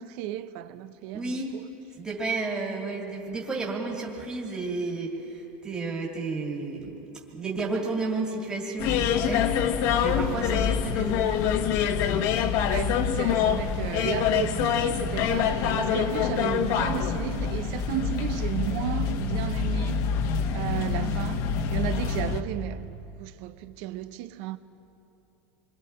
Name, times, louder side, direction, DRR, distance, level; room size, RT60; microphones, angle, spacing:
voice 1, 0.0-1.7 12.7-20.0 20.5-21.4 21.7-24.6, right 13 dB, 60° right, 0.8 m, -34 dB
voice 2, 1.1-1.5 2.0-7.0 7.3-11.4, right 3 dB, 15° right, 2.4 m, -32 dB
sound 1, 8.8-22.4, left 7 dB, 50° left, 1.2 m, -26 dB
27.5 x 23.0 x 4.4 m
supercardioid pair, 145°, 6 cm